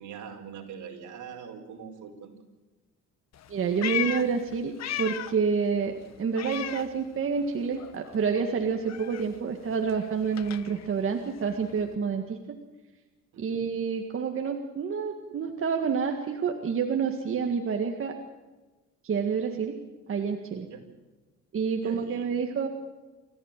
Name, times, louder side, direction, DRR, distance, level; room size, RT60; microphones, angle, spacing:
voice 1, 0.0-2.3 13.3-13.6 20.7-20.8 21.8-22.4, right 7 dB, 70° right, 3 dB, 4.9 m, -43 dB
Meow, 3.3-5.5 5.8-7.5 7.8-11.9, left 11 dB, 60° left, 1.3 m, -37 dB
voice 2, 3.5-4.7 5.0-12.4 13.4-18.1 19.0-19.8 20.1-20.7 21.5-22.7, right 6 dB, 45° right, 3 dB, 1.9 m, -28 dB
28.0 x 14.5 x 9.1 m, 1.2 s
cardioid pair, 135°, 31 cm